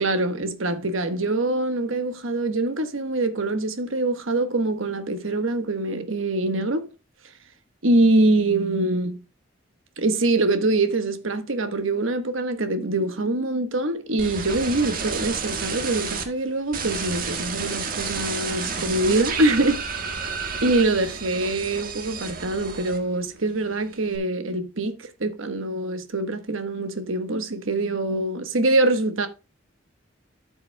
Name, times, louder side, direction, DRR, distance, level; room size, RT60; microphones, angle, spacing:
voice 1, 0.0-6.9 7.8-9.2 10.0-20.2 20.6-29.3, right 2 dB, 90° right, 1.3 m, -24 dB
sound 1, 14.2-16.2 16.7-23.3 23.6-24.2, right 5 dB, 45° right, 1.5 m, -31 dB
12.5 x 7.0 x 2.2 m
head